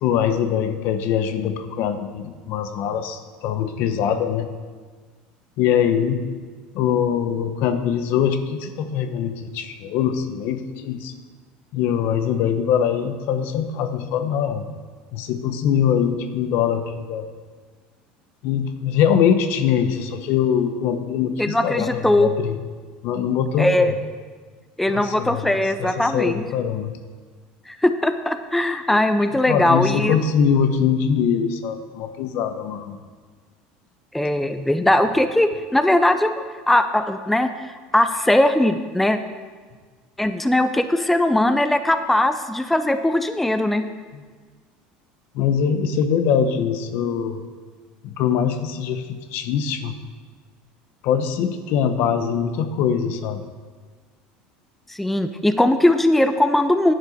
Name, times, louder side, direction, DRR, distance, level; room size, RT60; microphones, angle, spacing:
voice 1, 0.0-4.5 5.6-6.2 6.7-11.1 11.7-14.7 15.1-17.3 18.4-22.6 23.0-24.0 24.9-26.9 29.5-33.0 45.3-47.4 48.0-50.0 51.0-53.4, left 8 dB, 65° left, 9 dB, 1.0 m, -22 dB
voice 2, 21.4-22.3 23.6-23.9 24.8-26.4 27.7-30.2 34.1-37.5 37.9-39.2 40.2-43.8 54.9-56.9, left 1 dB, 5° left, 9 dB, 0.6 m, -19 dB
10.5 x 7.3 x 6.6 m, 1.5 s
supercardioid pair, 110°, 4 cm